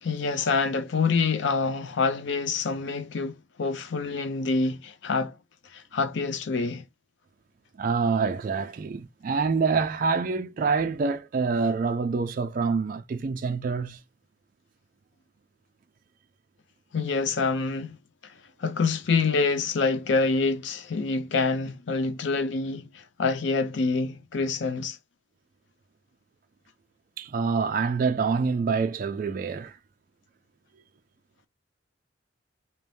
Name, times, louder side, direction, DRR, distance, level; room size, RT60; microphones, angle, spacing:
voice 1, 0.0-5.4 5.7-6.8 16.9-18.0 18.2-18.3 18.6-25.0, left 4 dB, 70° left, 0.5 m, -26 dB
voice 2, 7.8-14.0 27.2-29.8, right 5 dB, 45° right, 0.3 m, -26 dB
2.6 x 2.1 x 3.1 m
head